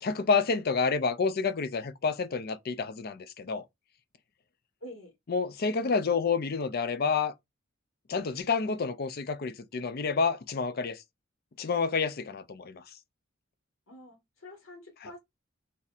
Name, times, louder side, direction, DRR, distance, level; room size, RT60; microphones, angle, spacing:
voice 1, 0.0-3.6 5.3-7.3 8.1-11.0 11.6-12.8, left 5 dB, 45° left, 0.4 m, -29 dB
voice 2, 4.8-5.1 13.9-15.2, left 1 dB, 80° left, 1.5 m, -47 dB
4.0 x 2.7 x 2.4 m
head